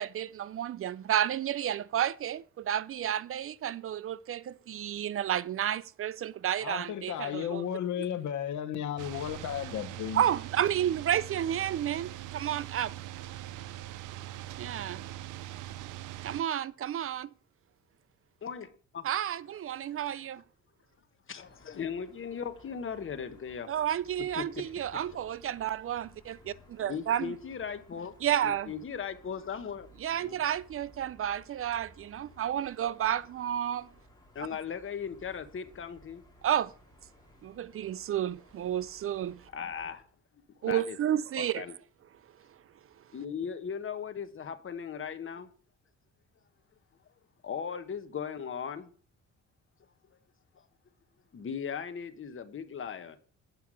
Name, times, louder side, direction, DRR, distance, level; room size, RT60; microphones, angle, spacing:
voice 1, 0.0-7.6 10.2-12.9 14.6-15.1 16.2-17.3 19.0-20.4 23.7-27.3 28.2-28.7 30.0-33.9 36.4-36.7 37.4-39.5 40.6-41.7 42.4-42.6, right 10 dB, 45° right, 0.4 m, -31 dB
voice 2, 6.6-10.2, left 10 dB, 75° left, 1.0 m, -34 dB
sound 1, 9.0-16.4, right 13 dB, 90° right, 0.6 m, -42 dB
voice 3, 18.4-19.1 21.3-23.7 24.4-25.0 26.5-26.6 26.9-28.1 28.4-29.9 30.2-30.4 34.3-36.2 39.5-40.0 40.6-41.0 41.4-41.7 43.1-45.5 47.4-48.9 51.3-53.2, left 7 dB, 45° left, 1.2 m, -38 dB
sound 2, 21.4-40.0, equal, 15° left, 2.7 m, -59 dB
9.3 x 5.6 x 6.2 m
cardioid pair, 90°, 30 cm